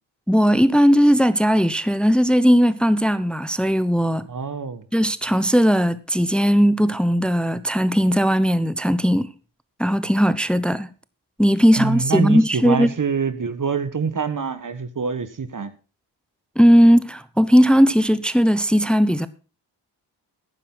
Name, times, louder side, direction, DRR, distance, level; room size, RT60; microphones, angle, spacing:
voice 1, 0.3-4.2 4.9-9.3 9.8-10.9 11.4-12.9 16.6-19.3, equal, ahead, 0.9 m, -17 dB
voice 2, 4.3-4.8 11.8-15.7, right 5 dB, 40° right, 1.5 m, -25 dB
14.5 x 9.9 x 3.9 m
hypercardioid pair, 40°, 49 cm